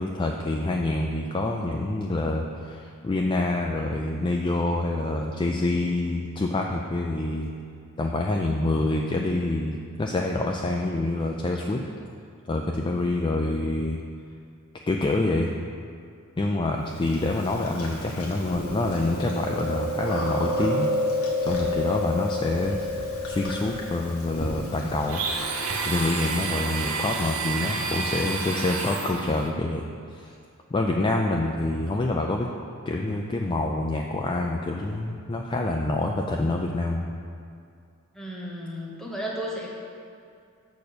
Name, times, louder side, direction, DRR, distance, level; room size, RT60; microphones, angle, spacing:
voice 1, 0.0-7.5 8.0-11.8 12.5-14.0 14.9-15.5 16.4-20.9 21.4-22.9 23.3-25.2 25.9-29.9 30.1-30.3 30.7-32.5 32.9-37.1, left 2 dB, 20° left, 0 dB, 0.3 m, -26 dB
Chewing mastication, 17.1-26.0, left 1 dB, 85° left, 1.3 m, -30 dB
Domestic sounds home sounds, 25.1-29.5, right 4 dB, 70° right, 0.7 m, -30 dB
voice 2, 38.1-39.7, equal, ahead, -4 dB, 1.1 m, -33 dB
6.8 x 4.3 x 6.7 m, 2.4 s
head